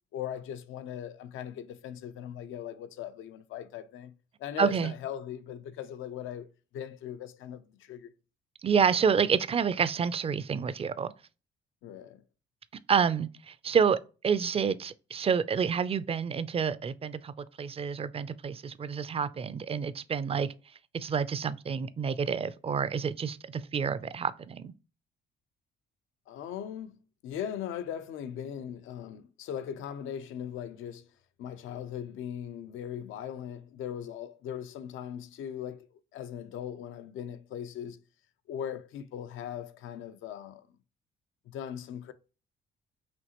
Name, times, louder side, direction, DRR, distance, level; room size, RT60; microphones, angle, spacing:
voice 1, 0.1-4.1 4.4-8.1 11.8-12.2 26.3-31.1 31.4-35.9 36.1-38.0 38.5-40.7 41.5-42.1, left 9 dB, 80° left, 0.5 m, -39 dB
voice 2, 4.6-4.9 8.6-11.1 12.9-20.5 20.9-24.7, right 6 dB, 30° right, 0.4 m, -28 dB
5.1 x 2.8 x 2.9 m
cardioid pair, 90°, 20 cm